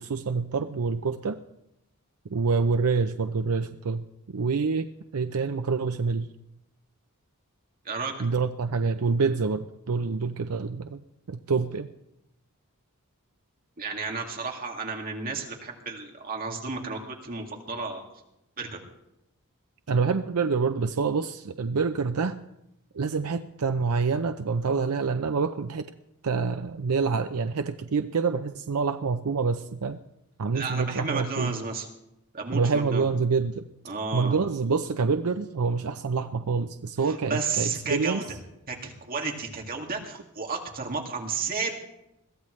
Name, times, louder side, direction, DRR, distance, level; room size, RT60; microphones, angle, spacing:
voice 1, 0.0-1.4 2.3-4.9 5.1-6.3 8.2-11.0 11.3-11.9 19.9-22.4 22.9-25.9 26.2-30.0 30.4-31.5 32.5-33.6 34.1-38.2, right 4 dB, 75° right, 8 dB, 0.6 m, -27 dB
voice 2, 7.8-8.3 13.8-18.0 18.6-18.8 30.5-31.9 32.3-33.0 33.8-34.4 37.0-38.2 38.7-41.7, right 4 dB, 40° right, 1 dB, 2.3 m, -32 dB
22.0 x 15.0 x 3.2 m, 0.84 s
head